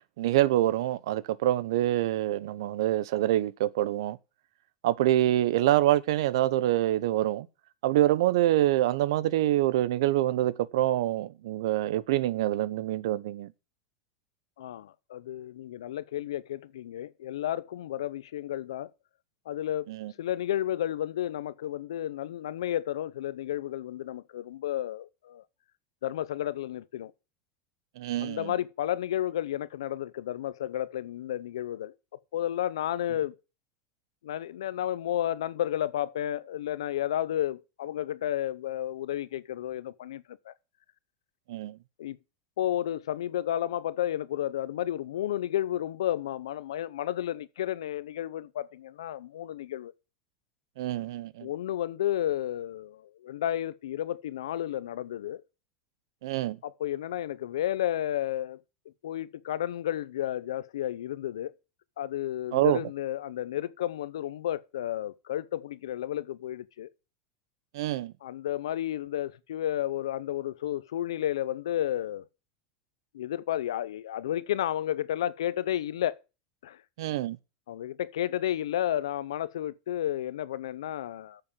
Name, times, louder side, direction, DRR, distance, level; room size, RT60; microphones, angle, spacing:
voice 1, 0.2-4.2 4.8-7.5 7.8-13.5 19.9-20.1 28.0-28.5 41.5-41.8 50.8-51.5 56.2-56.6 62.5-62.8 67.7-68.1 77.0-77.4, right 14 dB, 75° right, 0.8 m, -26 dB
voice 2, 14.6-18.9 19.5-19.9 20.2-25.4 26.0-27.1 28.2-31.9 32.3-33.3 34.2-40.5 42.0-42.2 42.6-49.9 51.4-55.4 56.6-58.6 59.0-61.5 62.0-66.9 68.2-72.2 73.1-76.2 76.6-76.8 77.7-81.4, left 12 dB, 90° left, 0.7 m, -32 dB
8.8 x 6.9 x 7.4 m
supercardioid pair, 130°, 3 cm